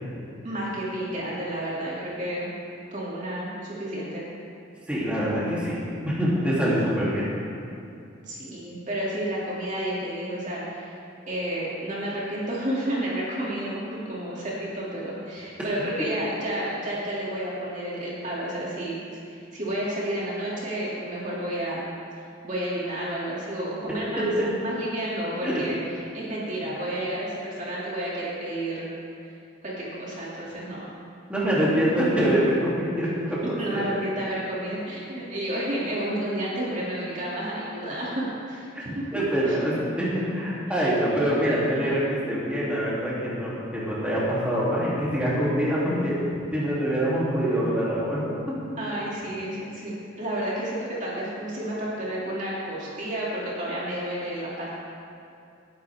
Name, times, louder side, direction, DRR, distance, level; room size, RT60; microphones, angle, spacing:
voice 1, 0.4-2.5 2.9-4.2 8.2-11.0 11.3-21.8 22.4-24.3 24.6-25.8 26.1-28.9 29.2-29.3 29.6-30.9 33.6-39.0 39.5-39.6 40.8-40.9 48.8-54.7, right 1 dB, 40° right, -7 dB, 2.8 m, -31 dB
voice 2, 4.9-5.8 6.0-7.2 24.2-24.5 25.4-25.5 31.3-33.1 33.7-33.8 38.7-38.8 39.1-46.1 46.5-48.2, equal, 5° right, -9 dB, 3.2 m, -24 dB
20.5 x 11.0 x 3.7 m, 2.6 s
head